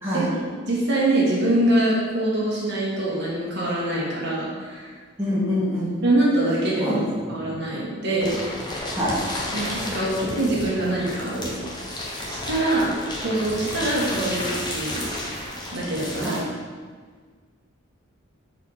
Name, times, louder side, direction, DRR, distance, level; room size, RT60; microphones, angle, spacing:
voice 1, 0.1-4.9 5.3-5.4 6.0-7.0 7.3-8.4 9.5-11.6 12.3-12.9 13.2-16.4, right 1 dB, 55° right, -6 dB, 1.4 m, -24 dB
voice 2, 5.2-6.0 6.8-7.4 8.9-9.1 16.2-16.4, equal, 10° right, -10 dB, 1.5 m, -25 dB
sound 1, 8.2-16.4, left 1 dB, 20° left, 0.7 m, -32 dB
4.2 x 4.1 x 5.5 m, 1.5 s
head